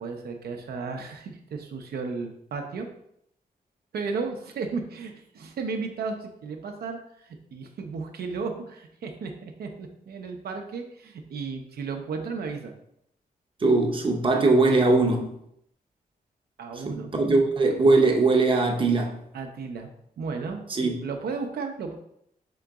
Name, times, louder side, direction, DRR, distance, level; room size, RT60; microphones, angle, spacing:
voice 1, 0.0-2.9 3.9-12.7 16.6-17.1 19.3-19.9 20.2-22.0, right 4 dB, 80° right, 0.6 m, -34 dB
voice 2, 13.6-15.3 16.9-19.1 20.7-21.0, right 3 dB, 35° right, 0.6 m, -21 dB
3.8 x 3.8 x 3.5 m
wide cardioid pair, 105°, 16 cm